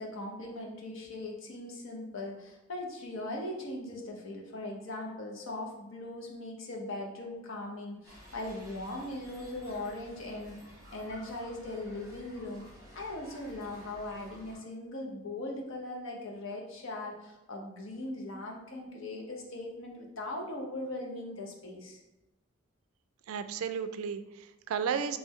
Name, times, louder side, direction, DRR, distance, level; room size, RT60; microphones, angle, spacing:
voice 1, 0.0-10.6 10.9-12.7 12.9-22.0, left 2 dB, 65° left, 0 dB, 0.8 m, -39 dB
sound 1, 8.0-14.6, equal, 15° right, 1.0 m, -53 dB
voice 2, 23.3-25.2, right 7 dB, 80° right, 11 dB, 0.3 m, -33 dB
3.7 x 3.2 x 3.0 m, 0.97 s
head